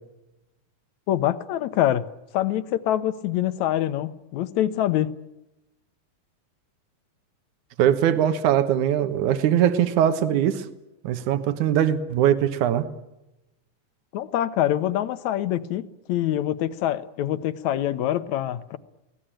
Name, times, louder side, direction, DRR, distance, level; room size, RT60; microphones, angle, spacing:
voice 1, 1.1-2.1 2.3-5.1 14.1-18.8, left 12 dB, 70° left, 13 dB, 2.3 m, -25 dB
voice 2, 7.8-10.7 11.0-12.9, right 10 dB, 80° right, 10 dB, 2.8 m, -21 dB
24.5 x 18.5 x 9.0 m, 0.94 s
omnidirectional pair, 3.5 m